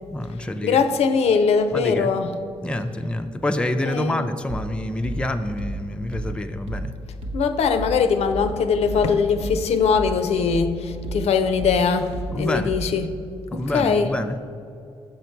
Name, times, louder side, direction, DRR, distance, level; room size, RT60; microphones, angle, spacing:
voice 1, 0.1-0.8 1.7-2.1 2.6-6.9 12.3-12.7 13.5-14.4, left 1 dB, 10° left, 7 dB, 0.4 m, -27 dB
voice 2, 0.6-2.3 3.9-4.2 7.3-13.1 13.5-14.1, left 5 dB, 75° left, 8 dB, 0.5 m, -21 dB
sound 1, 4.5-13.2, right 1 dB, 85° right, 0.9 m, -34 dB
6.5 x 5.8 x 4.5 m, 2.5 s
cardioid pair, 85°, 11 cm